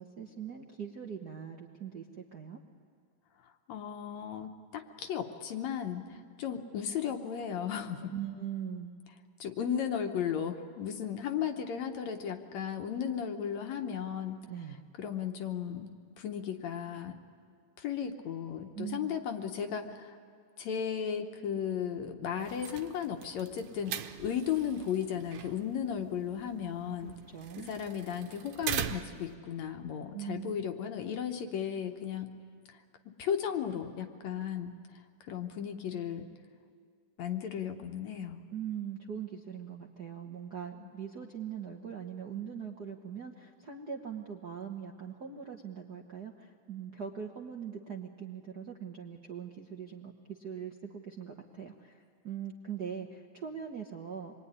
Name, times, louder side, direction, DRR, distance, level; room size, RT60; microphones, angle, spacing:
voice 1, 0.0-2.6 8.1-8.9 14.5-14.9 18.7-19.2 27.0-27.7 30.1-30.6 38.5-54.3, right 8 dB, 70° right, 1 dB, 0.9 m, -41 dB
voice 2, 3.7-8.1 9.4-14.4 15.0-17.2 17.8-20.2 20.6-27.1 27.6-32.4 33.1-34.8 35.3-36.3 37.2-38.4 40.8-40.9, left 8 dB, 65° left, 5 dB, 2.2 m, -35 dB
sound 1, 22.4-29.3, right 10 dB, 85° right, 2.5 m, -41 dB
26.0 x 22.0 x 9.9 m, 2.1 s
omnidirectional pair, 3.7 m